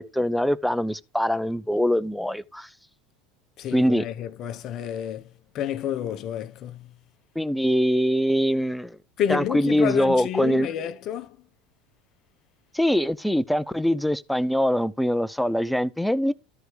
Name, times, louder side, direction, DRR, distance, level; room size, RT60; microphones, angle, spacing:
voice 1, 0.0-2.7 3.7-4.1 7.4-9.0 9.3-10.7 12.7-16.3, equal, ahead, 0.6 m, -23 dB
voice 2, 3.6-5.3 5.5-6.9 9.2-11.4, left 9 dB, 45° left, 1.1 m, -29 dB
13.0 x 4.7 x 4.7 m
supercardioid pair, 110°, 0 cm